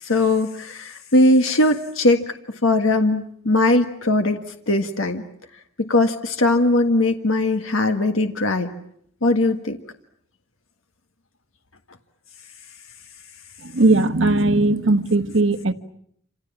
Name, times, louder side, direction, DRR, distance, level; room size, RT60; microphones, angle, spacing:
voice 1, 0.0-4.4 4.7-5.2 5.8-8.7 9.2-9.8, left 2 dB, 70° left, 1.7 m, -20 dB
voice 2, 13.6-15.7, right 2 dB, 65° right, 1.3 m, -18 dB
28.0 x 27.5 x 7.4 m
head